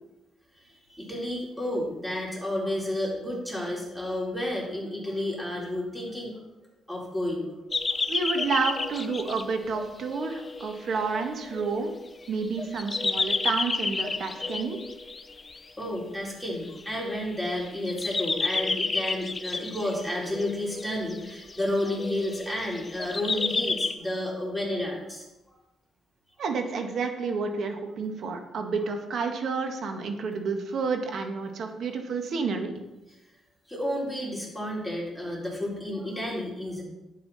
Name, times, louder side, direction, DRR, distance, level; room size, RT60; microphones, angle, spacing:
voice 1, 0.9-6.3 6.9-7.5 7.9-8.0 10.2-10.3 15.8-25.2 33.7-36.8, left 1 dB, ahead, -4 dB, 4.1 m, -31 dB
sound 1, 7.7-15.6 16.6-17.3 17.6-23.9, left 3 dB, 30° left, 0.8 m, -31 dB
voice 2, 8.1-11.9 12.3-14.8 26.4-32.7, right 4 dB, 60° right, 5 dB, 1.7 m, -30 dB
11.0 x 8.4 x 4.3 m, 0.97 s
cardioid pair, 90°, 0 cm